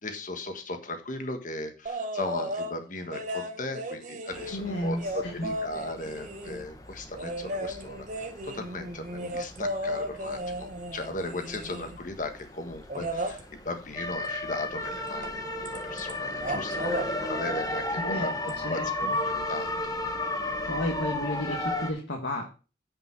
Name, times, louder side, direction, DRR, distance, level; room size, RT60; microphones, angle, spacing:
voice 1, 0.0-18.3 18.6-19.7 20.1-20.2, left 2 dB, 45° left, 6 dB, 1.5 m, -37 dB
sound 1, 1.9-2.8 3.1-6.7 7.2-12.0 12.9-13.4 15.2-15.4 15.7-16.1 16.4-17.1 18.5-18.6, equal, 45° right, 1.4 m, -34 dB
sound 2, 4.3-21.9, left 1 dB, 20° left, 1.3 m, -35 dB
voice 2, 4.5-5.4 18.0-18.3 18.6-19.2 20.7-22.4, left 1 dB, 85° left, 0 dB, 1.7 m, -32 dB
9.4 x 5.3 x 5.9 m, 0.34 s
head